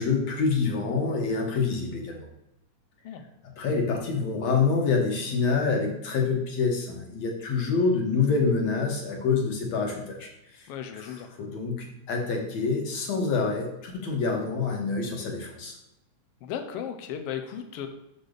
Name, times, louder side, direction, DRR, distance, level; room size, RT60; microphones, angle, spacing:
voice 1, 0.0-2.3 3.6-10.7 10.9-15.8, left 4 dB, 60° left, 0 dB, 2.4 m, -27 dB
voice 2, 10.7-11.3 16.4-17.9, left 8 dB, 85° left, 6 dB, 1.3 m, -35 dB
6.8 x 6.6 x 3.9 m, 0.87 s
omnidirectional pair, 3.7 m